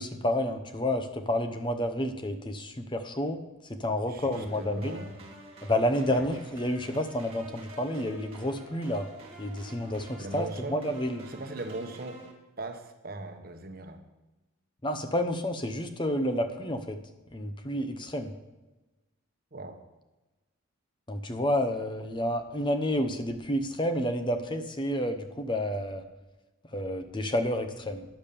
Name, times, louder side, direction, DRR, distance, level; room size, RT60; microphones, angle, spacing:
voice 1, 0.0-3.4 3.7-5.0 5.6-9.1 9.4-11.3 14.8-17.0 17.3-18.3 21.1-26.0 26.7-28.1, left 1 dB, 20° left, 7 dB, 0.8 m, -30 dB
voice 2, 4.1-5.1 6.1-6.2 10.2-10.8 11.3-12.2 12.6-14.0 19.5-19.8, right 2 dB, 45° right, 6 dB, 1.1 m, -39 dB
sound 1, 4.3-12.3, right 1 dB, 25° right, 1.6 m, -49 dB
10.5 x 7.2 x 6.8 m, 1.1 s
head